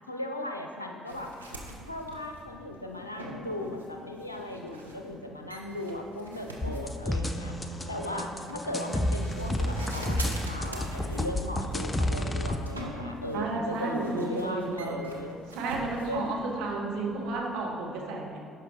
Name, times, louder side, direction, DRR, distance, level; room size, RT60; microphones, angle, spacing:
voice 1, 0.1-1.3 1.9-7.6 7.9-15.4 16.1-16.4, left 1 dB, 85° left, 3 dB, 0.5 m, -37 dB
sound 1, 1.1-17.5, right 1 dB, 90° right, 0.8 m, -44 dB
sound 2, 6.6-12.6, left 1 dB, 15° left, 0.6 m, -30 dB
voice 2, 13.3-15.1 15.5-18.4, right 3 dB, 60° right, -2 dB, 1.4 m, -32 dB
11.0 x 5.5 x 3.7 m, 2.1 s
figure-of-eight pair, 50°, 0 cm